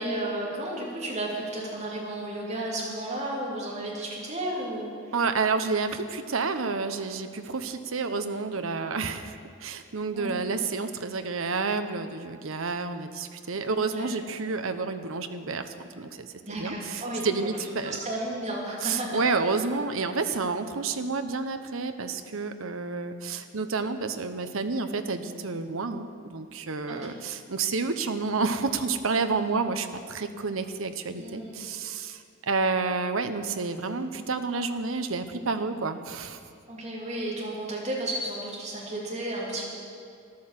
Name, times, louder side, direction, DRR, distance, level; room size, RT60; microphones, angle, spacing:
voice 1, 0.0-5.1 10.1-10.3 13.8-14.1 16.4-17.4 17.8-19.4 26.9-27.2 31.1-31.6 36.7-39.6, right 1 dB, 30° right, -4 dB, 2.9 m, -33 dB
voice 2, 5.1-18.0 18.8-36.4, right 4 dB, 70° right, 9 dB, 0.9 m, -30 dB
13.5 x 11.5 x 7.5 m, 2.3 s
head